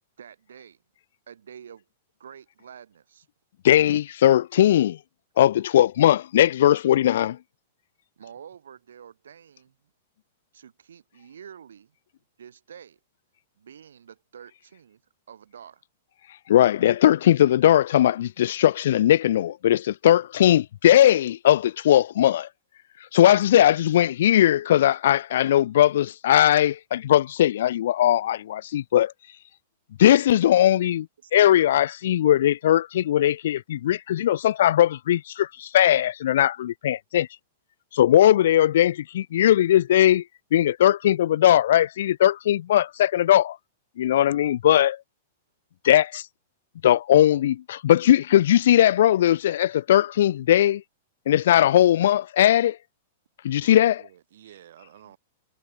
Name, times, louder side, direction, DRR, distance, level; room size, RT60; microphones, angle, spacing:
voice 1, 0.2-0.8 1.3-1.8 2.2-3.3 8.2-9.7 10.5-11.9 12.4-13.0 13.6-15.0 15.3-15.8 31.2-31.3, right 8 dB, 90° right, 2.7 m, -47 dB
voice 2, 3.6-5.0 5.4-7.4 16.5-22.5 23.1-29.1 30.0-31.1 31.3-37.3 37.9-40.2 40.5-43.6 44.0-45.0 45.8-46.2 46.8-50.8 51.3-52.8 53.4-54.0, left 12 dB, 70° left, 0.7 m, -19 dB
voice 3, 53.5-55.2, right 11 dB, 70° right, 6.8 m, -51 dB
hypercardioid pair, 135°, 0 cm